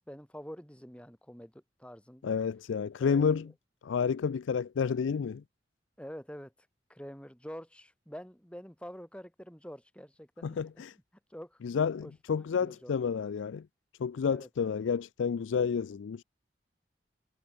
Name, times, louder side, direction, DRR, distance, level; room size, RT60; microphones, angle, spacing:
voice 1, 0.1-2.3 3.0-3.4 6.0-6.5 6.9-10.6 11.3-11.6 12.0-12.9 14.3-14.7, equal, 5° left, 3.5 m, -47 dB
voice 2, 2.2-3.5 3.8-5.4 10.4-10.9 11.6-13.7 14.0-16.2, left 6 dB, 90° left, 0.4 m, -30 dB
head